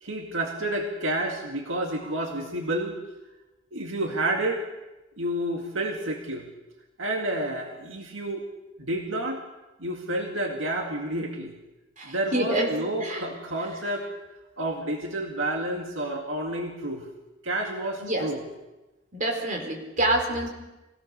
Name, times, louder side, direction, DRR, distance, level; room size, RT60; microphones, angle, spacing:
voice 1, 0.0-3.0 3.7-4.6 5.2-6.5 7.0-8.4 8.8-9.4 9.8-11.5 12.1-14.1 14.6-17.0 17.4-18.4, right 1 dB, 75° right, 2 dB, 2.2 m, -30 dB
voice 2, 12.0-12.7 13.0-13.3 18.0-18.3 19.1-20.5, right 1 dB, 40° right, 1 dB, 4.3 m, -27 dB
24.5 x 17.5 x 6.7 m, 1.0 s
head